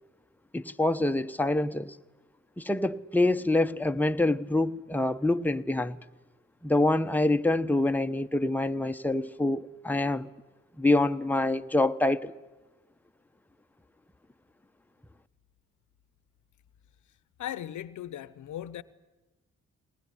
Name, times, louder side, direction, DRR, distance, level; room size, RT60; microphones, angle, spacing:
voice 1, 0.5-2.0 2.6-6.0 6.6-10.3 10.8-12.3, left 2 dB, 5° left, 0.9 m, -26 dB
voice 2, 17.4-18.8, left 11 dB, 80° left, 0.9 m, -37 dB
21.0 x 19.5 x 9.8 m
cardioid pair, 55°, 29 cm